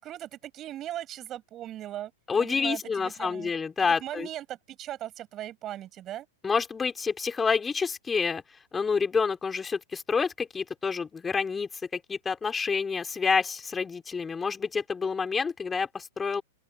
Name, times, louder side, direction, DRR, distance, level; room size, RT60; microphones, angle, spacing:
voice 1, 0.0-2.1 2.4-3.5 4.0-6.3, right 12 dB, 30° right, 8.0 m, -38 dB
voice 2, 2.3-4.3 6.4-8.4 8.7-16.4, left 5 dB, 15° left, 4.3 m, -28 dB
open air
hypercardioid pair, 125°, 0 cm